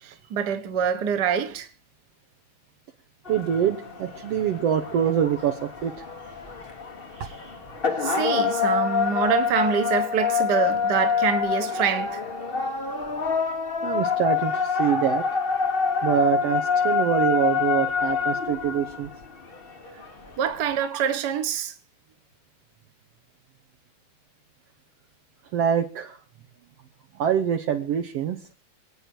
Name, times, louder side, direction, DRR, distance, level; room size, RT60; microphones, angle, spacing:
voice 1, 0.0-1.7 8.0-12.2 19.9-20.1 20.4-21.7, right 8 dB, 45° right, 1.6 m, -26 dB
sound 1, 3.3-20.8, left 6 dB, 35° left, 0.9 m, -26 dB
voice 2, 3.3-5.9 7.2-7.5 13.8-15.3 16.0-19.1 20.9-21.2 25.5-26.2 27.2-28.4, right 9 dB, 65° right, 1.8 m, -25 dB
26.5 x 8.9 x 4.4 m
omnidirectional pair, 3.4 m